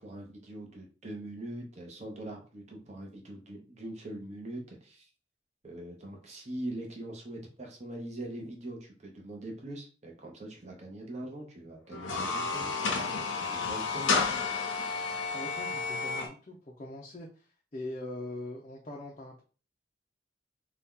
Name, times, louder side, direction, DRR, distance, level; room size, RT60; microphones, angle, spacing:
voice 1, 0.0-5.1 5.6-12.7 13.5-14.4, right 1 dB, 35° right, 1 dB, 0.7 m, -42 dB
sound 1, 11.9-16.3, left 4 dB, 90° left, 0.7 m, -31 dB
voice 2, 13.9-14.3 15.3-19.4, left 1 dB, 35° left, -2 dB, 0.5 m, -42 dB
2.8 x 2.3 x 3.6 m, 0.37 s
head